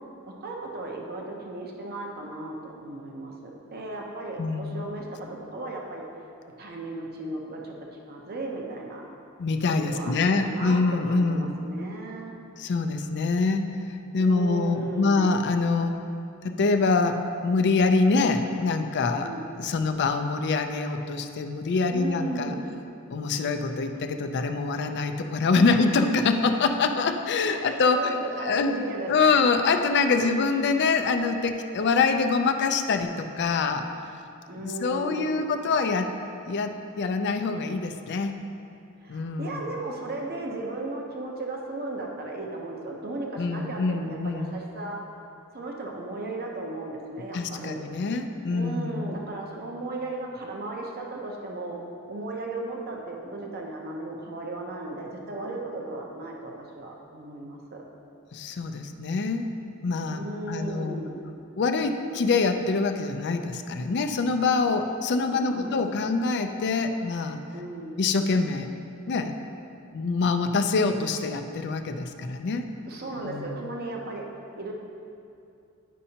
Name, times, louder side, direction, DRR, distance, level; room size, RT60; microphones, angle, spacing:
voice 1, 0.3-5.1 5.5-6.0 6.6-7.7 8.0-9.0 9.8-12.3 14.2-15.3 19.2-19.5 21.9-22.7 25.6-25.8 27.4-29.4 30.2-30.4 30.7-30.8 34.5-35.6 39.0-45.0 45.5-47.8 48.5-51.8 52.1-57.8 60.1-61.3 65.3-66.1 67.5-68.0 72.9-74.2 74.5-74.7, right 2 dB, 45° right, 0 dB, 0.7 m, -36 dB
voice 2, 4.4-4.9 9.4-11.5 12.6-13.7 14.1-15.9 16.4-17.2 17.4-19.3 19.6-22.5 23.1-28.7 29.1-33.8 34.6-36.1 36.4-38.4 39.1-39.7 43.4-44.5 47.3-49.1 58.3-59.5 59.8-61.0 61.6-67.4 68.0-68.7 69.1-69.3 69.9-72.6 73.2-73.6, left 4 dB, 50° left, 6 dB, 0.4 m, -25 dB
10.0 x 5.4 x 2.8 m, 2.6 s
head